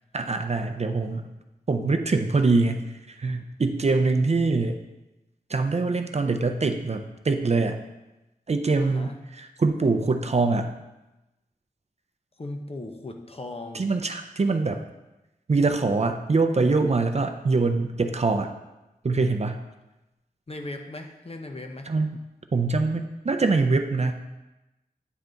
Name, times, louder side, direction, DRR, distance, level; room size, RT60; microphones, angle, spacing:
voice 1, 0.1-1.3 1.7-2.9 3.2-4.8 5.5-7.8 8.5-10.7 13.7-14.8 15.5-18.5 19.0-19.6 21.9-22.2 22.5-24.1, right 3 dB, 45° right, 6 dB, 0.5 m, -24 dB
voice 2, 8.8-9.2 12.4-13.9 20.5-21.9, left 2 dB, 40° left, 4 dB, 0.7 m, -38 dB
9.3 x 3.4 x 3.9 m, 0.98 s
wide cardioid pair, 80°, 16 cm